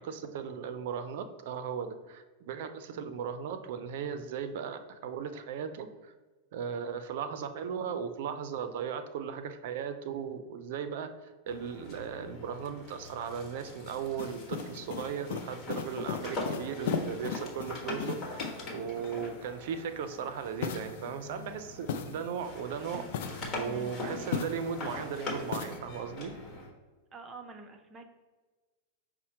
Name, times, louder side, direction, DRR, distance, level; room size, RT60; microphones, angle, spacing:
voice 1, 0.0-6.1 6.5-23.1 23.5-26.3, right 7 dB, 65° right, 9 dB, 0.5 m, -37 dB
sound 1, 11.5-22.0 22.4-26.7, left 2 dB, 30° left, 1.2 m, -42 dB
sound 2, 14.2-18.8 20.6-22.5 23.0-24.9 25.5-25.8, left 7 dB, 70° left, 0.4 m, -38 dB
voice 2, 23.5-23.9 27.1-28.1, right 3 dB, 25° right, 5 dB, 0.6 m, -46 dB
5.5 x 2.1 x 4.3 m, 1.3 s
hypercardioid pair, 120°, 0 cm